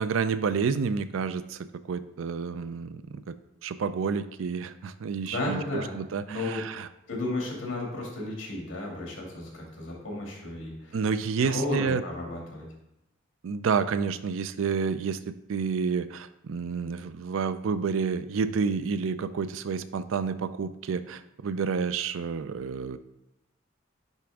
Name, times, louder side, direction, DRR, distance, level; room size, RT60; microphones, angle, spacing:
voice 1, 0.0-3.3 3.6-6.9 10.9-12.0 13.4-23.0, right 5 dB, 80° right, 13 dB, 0.4 m, -29 dB
voice 2, 5.3-6.0 6.3-6.6 7.1-11.0 11.4-12.7, left 2 dB, 80° left, -2 dB, 2.2 m, -33 dB
9.9 x 3.5 x 3.5 m, 0.86 s
head